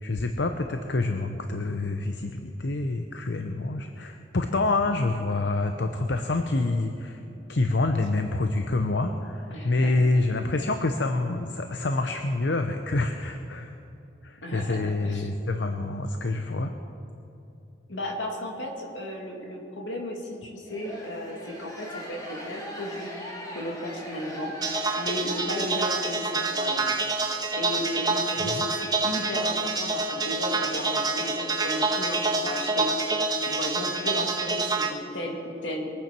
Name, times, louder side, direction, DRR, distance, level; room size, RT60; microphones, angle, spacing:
voice 1, 0.0-7.2 7.5-13.7 14.2-16.7 28.4-28.7, left 2 dB, 70° left, 6 dB, 0.7 m, -27 dB
voice 2, 9.5-9.9 14.4-15.3 17.9-23.1 23.5-24.5 25.0-26.9 27.6-35.9, left 1 dB, 85° left, 1 dB, 2.5 m, -34 dB
sound 1, 20.6-26.6, equal, 20° left, 2.2 m, -41 dB
sound 2, 24.6-34.9, right 3 dB, 20° right, 1.2 m, -27 dB
22.5 x 9.0 x 6.0 m, 2.7 s
head